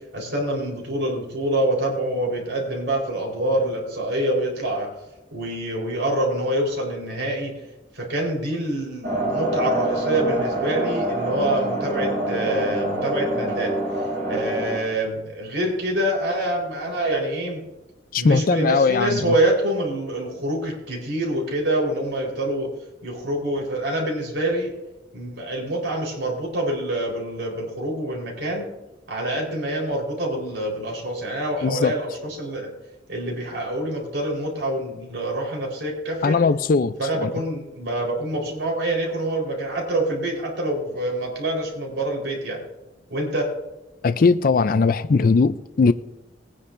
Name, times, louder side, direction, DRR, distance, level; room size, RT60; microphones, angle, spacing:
voice 1, 0.1-4.9 5.3-7.5 7.9-13.7 14.3-17.6 18.2-22.7 23.0-24.7 25.1-28.7 29.1-32.7 33.1-36.4 37.0-42.6 43.1-43.5, right 1 dB, 85° right, 4.2 m, -26 dB
sound 1, 9.0-14.8, right 1 dB, 55° right, 5.2 m, -25 dB
voice 2, 18.1-19.3 31.6-32.0 36.2-37.3 44.0-45.9, left 4 dB, 50° left, 0.4 m, -19 dB
21.5 x 9.9 x 2.6 m
head